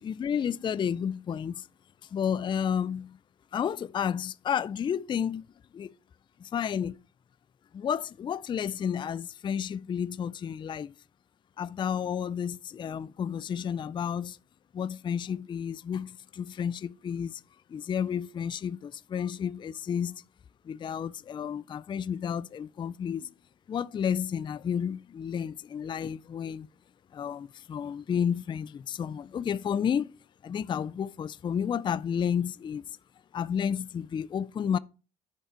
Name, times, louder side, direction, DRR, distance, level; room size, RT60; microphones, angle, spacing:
voice 1, 0.0-1.7 2.1-3.2 3.5-5.4 5.7-5.9 6.4-7.0 7.7-10.9 11.6-14.4 14.7-17.4 17.7-20.2 20.6-23.3 23.7-26.7 27.1-30.1 30.4-33.0 33.3-34.8, left 8 dB, 30° left, 0.3 m, -31 dB
10.5 x 5.6 x 4.4 m
cardioid pair, 110°, 17 cm